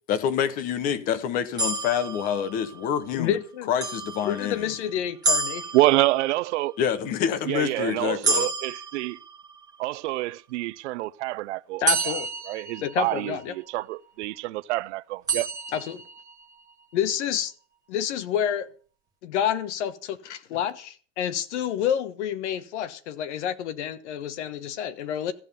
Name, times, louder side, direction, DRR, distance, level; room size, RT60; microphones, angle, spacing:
voice 1, 0.1-3.4 3.7-4.7 6.8-8.5, left 8 dB, 25° left, 0.8 m, -27 dB
sound 1, 1.6-2.9 3.8-4.7 5.2-6.5 8.2-9.7 11.9-13.4 15.3-16.4, right 3 dB, 10° right, 1.7 m, -29 dB
voice 2, 3.1-3.7 4.2-5.7 11.8-12.3 12.8-13.5 15.7-16.0 16.9-17.5 17.9-18.7 19.2-25.3, left 9 dB, 70° left, 1.3 m, -28 dB
voice 3, 5.7-6.7 7.5-9.2 9.8-12.2 12.5-15.5, right 18 dB, 75° right, 0.6 m, -27 dB
14.0 x 7.6 x 6.8 m
supercardioid pair, 180°, 36 cm